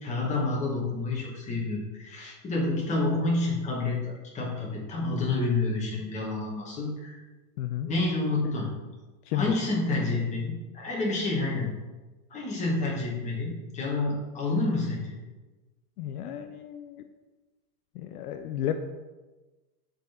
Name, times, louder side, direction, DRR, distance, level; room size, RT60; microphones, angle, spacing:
voice 1, 0.0-4.0 4.3-7.2 7.8-8.7 9.3-11.7 12.3-15.2, left 2 dB, 15° left, -3 dB, 1.1 m, -29 dB
voice 2, 7.6-7.9 8.4-8.5 9.3-9.6 16.0-17.0 17.9-18.9, left 10 dB, 65° left, 8 dB, 0.6 m, -32 dB
6.0 x 4.0 x 4.2 m, 1.2 s
supercardioid pair, 160°, 49 cm